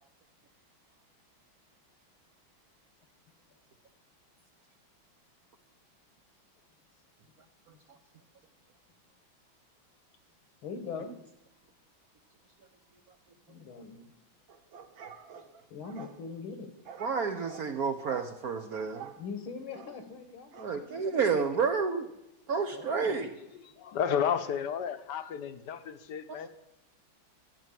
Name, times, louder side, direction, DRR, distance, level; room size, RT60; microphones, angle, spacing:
voice 1, 10.6-11.1 13.5-14.1 15.7-16.7 19.2-21.2 22.7-23.3, left 5 dB, 85° left, 2.4 m, -42 dB
sound 1, 14.5-16.2 16.8-17.7 18.1-18.3 18.7-19.2 19.7-20.0 20.5-20.7, right 7 dB, 75° right, 2.0 m, -48 dB
voice 2, 17.0-19.1 20.6-22.1 22.5-23.3 26.3-26.5, right 5 dB, 60° right, 1.1 m, -30 dB
voice 3, 23.8-26.5, left 8 dB, 65° left, 1.3 m, -32 dB
13.5 x 9.1 x 7.5 m
omnidirectional pair, 2.2 m